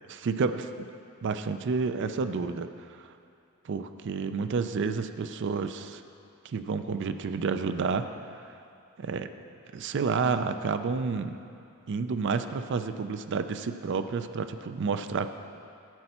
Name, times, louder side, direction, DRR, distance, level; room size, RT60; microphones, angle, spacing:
voice 1, 0.1-0.7 1.2-2.7 3.0-3.1 3.7-6.0 6.4-8.1 9.0-9.3 9.7-11.4 11.9-15.3, right 5 dB, 55° right, 10 dB, 0.4 m, -30 dB
11.0 x 7.9 x 4.2 m, 2.5 s
head